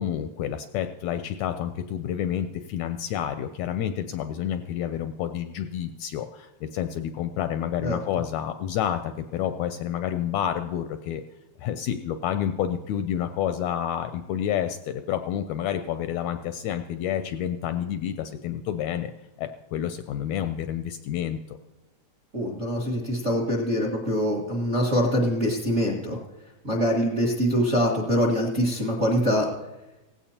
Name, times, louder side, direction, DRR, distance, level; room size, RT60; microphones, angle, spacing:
voice 1, 0.0-11.2 11.6-19.1 19.4-21.6, left 10 dB, 80° left, 9 dB, 1.7 m, -29 dB
voice 2, 22.3-26.2 26.6-29.5, equal, 35° right, -2 dB, 1.2 m, -24 dB
17.5 x 15.5 x 2.8 m, 1.0 s
omnidirectional pair, 3.6 m